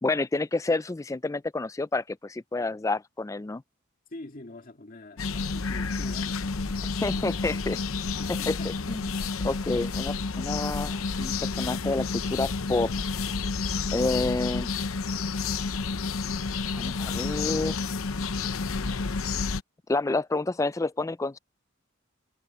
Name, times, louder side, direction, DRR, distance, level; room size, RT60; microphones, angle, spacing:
voice 1, 0.0-3.6 7.0-7.8 8.5-9.1 9.4-12.9 13.9-14.7 16.8-17.8 19.9-21.4, left 2 dB, 15° left, 0.3 m, -29 dB
voice 2, 4.1-7.9 8.2-9.0, left 2 dB, 45° left, 2.0 m, -46 dB
sound 1, 5.2-19.6, left 4 dB, 85° left, 0.8 m, -30 dB
head